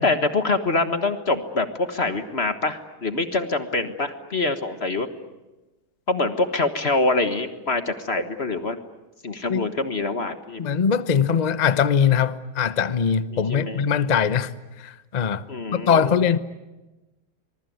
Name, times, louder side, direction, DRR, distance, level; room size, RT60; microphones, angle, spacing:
voice 1, 0.0-5.1 6.1-8.8 9.2-10.7 13.3-13.8 15.5-16.2, left 3 dB, 35° left, 9 dB, 1.4 m, -25 dB
voice 2, 10.6-14.5 14.8-15.4 15.7-16.4, left 7 dB, 75° left, 13 dB, 0.3 m, -21 dB
24.5 x 23.0 x 9.4 m, 1.1 s
omnidirectional pair, 2.3 m